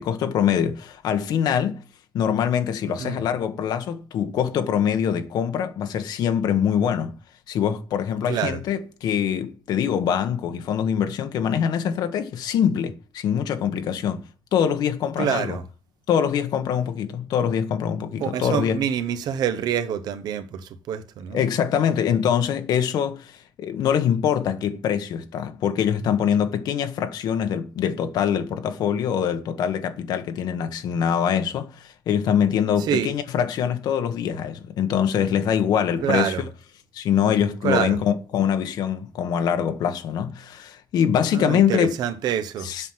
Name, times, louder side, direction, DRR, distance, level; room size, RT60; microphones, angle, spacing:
voice 1, 0.0-1.8 2.1-7.1 7.5-14.2 14.5-15.6 16.1-18.8 21.3-36.3 36.9-42.0 42.6-42.9, left 8 dB, 75° left, 1.2 m, -24 dB
voice 2, 8.3-8.6 15.2-15.6 18.2-21.4 32.8-33.1 36.0-36.4 37.6-38.0 41.3-42.7, right 9 dB, 75° right, 1.1 m, -26 dB
8.2 x 5.9 x 7.5 m
cardioid pair, 180°, 7 cm